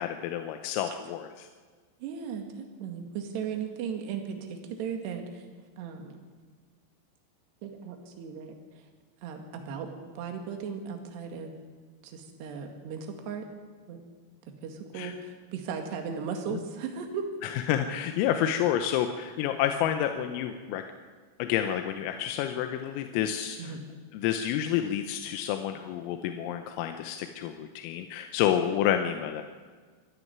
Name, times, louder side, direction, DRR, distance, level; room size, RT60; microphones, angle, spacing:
voice 1, 0.0-1.5 15.0-15.1 17.4-20.8 21.4-23.8 24.1-29.4, left 10 dB, 85° left, 6 dB, 3.6 m, -29 dB
voice 2, 2.0-5.4 5.8-6.1 7.6-8.5 9.2-9.9 10.2-11.5 12.0-13.4 13.9-14.0 14.6-17.3 23.6-23.8, right 6 dB, 60° right, 4 dB, 3.9 m, -36 dB
25.0 x 11.0 x 9.5 m, 1.5 s
omnidirectional pair, 5.9 m